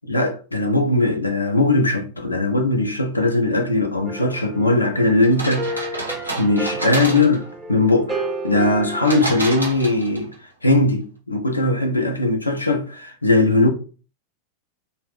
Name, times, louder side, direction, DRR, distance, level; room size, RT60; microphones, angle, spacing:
voice 1, 0.1-6.0 6.4-7.4 7.7-10.3 10.6-13.7, left 2 dB, 80° left, 0.4 m, -19 dB
sound 1, 4.0-9.2, right 2 dB, 15° right, 0.4 m, -31 dB
sound 2, 5.2-7.5 9.0-10.3, right 2 dB, 85° right, 0.6 m, -29 dB
2.4 x 2.0 x 3.3 m
figure-of-eight pair, 90°, 0 cm